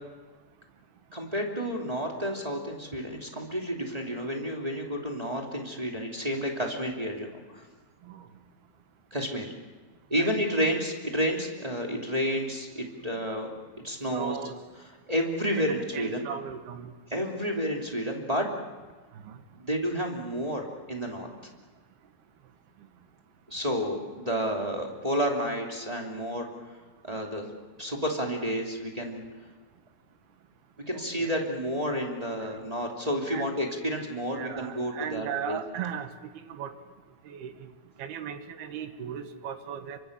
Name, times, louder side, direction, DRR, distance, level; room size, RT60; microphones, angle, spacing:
voice 1, 1.1-7.6 9.1-9.5 10.1-13.5 13.8-14.4 15.1-16.3 17.1-18.5 19.6-21.3 23.5-26.5 27.0-27.5 27.8-29.3 30.9-35.6, equal, 10° right, 0 dB, 2.2 m, -30 dB
voice 2, 14.1-14.5 15.6-15.7 15.9-16.9 19.2-19.4 30.9-31.3 32.4-32.5 33.3-33.5 34.3-36.1 36.5-36.7 37.2-37.7 38.0-40.0, right 8 dB, 80° right, 8 dB, 3.4 m, -37 dB
26.5 x 24.0 x 6.7 m, 1.3 s
omnidirectional pair, 4.5 m